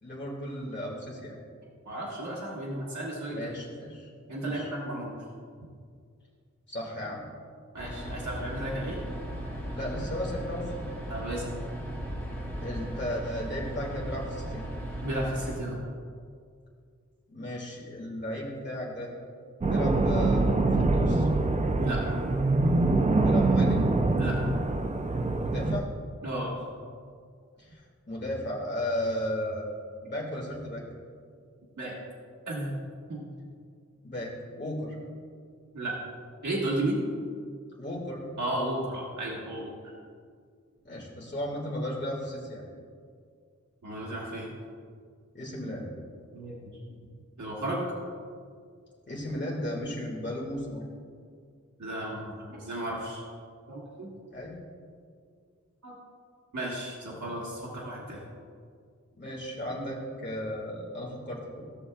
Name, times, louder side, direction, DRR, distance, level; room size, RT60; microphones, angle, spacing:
voice 1, 0.0-1.4 3.3-4.1 4.4-4.7 6.7-7.2 9.7-10.7 12.6-14.6 17.3-19.1 19.7-21.3 23.2-23.9 25.4-25.9 27.6-27.8 28.1-29.7 30.0-30.8 34.0-35.0 37.8-38.2 40.8-42.6 45.3-45.9 49.1-50.9 54.3-54.6 59.2-61.6, left 1 dB, 40° left, -5 dB, 2.0 m, -35 dB
voice 2, 1.8-3.5 4.3-5.2 7.7-9.0 11.1-11.6 15.0-15.8 21.8-22.0 24.1-24.4 26.2-26.5 31.8-31.9 32.5-32.7 33.1-33.2 35.7-36.0 36.4-37.0 38.4-39.9 43.8-44.5 46.3-46.8 47.4-47.9 51.8-53.2 53.7-54.1 55.8-55.9 56.5-58.2, right 1 dB, 75° right, -5 dB, 1.5 m, -33 dB
sound 1, 7.8-15.6, right 1 dB, 10° left, 2.1 m, -37 dB
sound 2, 19.6-25.8, right 2 dB, 25° right, 0.5 m, -24 dB
15.0 x 6.8 x 2.3 m, 2.1 s
wide cardioid pair, 75°, 29 cm